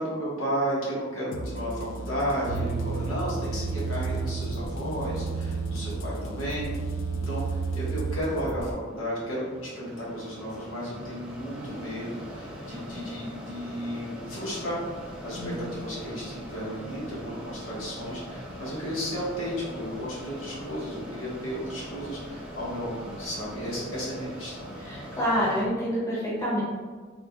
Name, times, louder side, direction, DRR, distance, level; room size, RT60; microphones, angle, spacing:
voice 1, 0.0-6.7 7.3-14.8 15.2-24.7, equal, 90° left, -7 dB, 1.4 m, -33 dB
sound 1, 1.3-8.7, right 1 dB, 65° left, 0.4 m, -37 dB
sound 2, 2.5-8.2, right 5 dB, 50° right, 0.3 m, -32 dB
Mechanisms, 7.9-25.6, equal, 5° right, 0.6 m, -42 dB
voice 2, 15.3-15.7 24.8-26.6, equal, 15° left, -9 dB, 1.0 m, -27 dB
3.8 x 2.3 x 3.5 m, 1.5 s
head